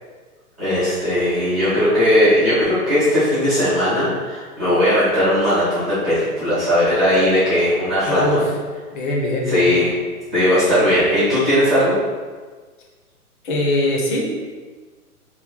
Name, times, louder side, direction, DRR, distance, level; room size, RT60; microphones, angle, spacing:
voice 1, 0.6-8.4 9.5-9.8 10.3-12.0, equal, 10° right, -18 dB, 0.4 m, -18 dB
voice 2, 8.0-8.5 8.9-9.7 13.4-14.3, left 1 dB, 35° left, -1 dB, 0.7 m, -21 dB
3.1 x 2.3 x 3.7 m, 1.4 s
hypercardioid pair, 125°, 45 cm